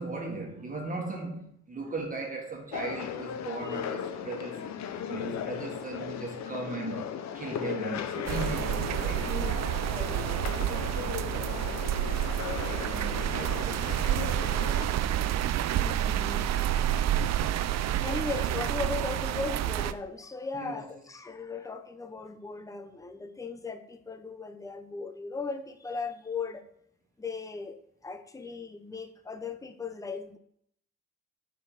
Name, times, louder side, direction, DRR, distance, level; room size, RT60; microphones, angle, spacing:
voice 1, 0.0-4.7 5.1-9.3 10.0-11.2 12.9-14.0 20.5-20.9, right 2 dB, 25° right, 1.7 m, -38 dB
sound 1, 2.7-14.8, left 8 dB, 65° left, 0.7 m, -37 dB
sound 2, 8.2-19.9, right 11 dB, 60° right, 0.5 m, -29 dB
voice 2, 9.2-10.2 15.6-16.9 18.0-26.6 27.2-30.4, left 4 dB, 10° left, 0.7 m, -38 dB
5.9 x 4.7 x 6.4 m
cardioid pair, 90°, 30 cm